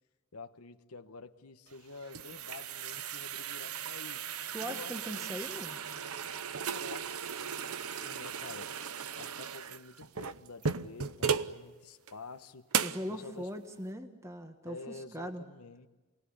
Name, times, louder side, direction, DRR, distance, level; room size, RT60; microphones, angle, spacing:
voice 1, 0.3-4.2 4.6-5.3 6.6-8.7 9.2-12.8 13.1-13.5 14.6-15.9, left 4 dB, 90° left, 8 dB, 1.1 m, -49 dB
sound 1, 1.7-11.6 12.1-12.2 12.7-13.1, right 7 dB, 80° right, 0.9 m, -36 dB
voice 2, 4.5-5.8 12.8-15.4, equal, 15° right, 6 dB, 1.4 m, -40 dB
28.0 x 19.0 x 10.0 m, 1.2 s
head